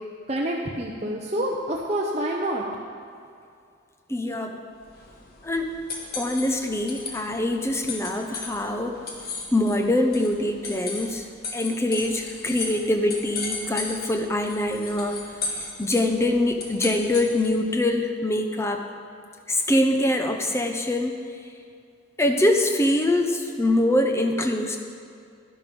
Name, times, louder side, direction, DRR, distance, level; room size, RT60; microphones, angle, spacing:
voice 1, 0.3-2.6, right 1 dB, 35° right, -2 dB, 0.8 m, -27 dB
voice 2, 4.1-4.6 5.4-5.7 6.2-9.0 9.5-11.3 11.5-15.2 15.8-18.8 19.5-21.1 22.2-24.8, left 1 dB, 15° left, 4 dB, 0.8 m, -24 dB
sound 1, 4.8-17.7, left 4 dB, 50° left, 1.5 m, -36 dB
11.0 x 11.0 x 5.4 m, 2.4 s
head